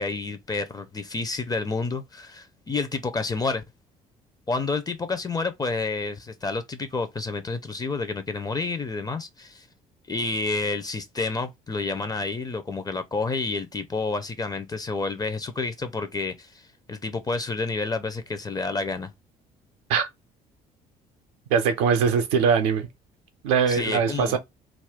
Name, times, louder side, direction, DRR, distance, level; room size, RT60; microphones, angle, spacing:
voice 1, 0.0-3.6 4.5-9.7 10.1-16.6 16.9-19.1 23.7-24.4, left 3 dB, 20° left, 0.5 m, -29 dB
voice 2, 21.5-22.9 23.4-24.4, right 6 dB, 65° right, 0.6 m, -21 dB
2.4 x 2.2 x 3.4 m
figure-of-eight pair, 50°, 21 cm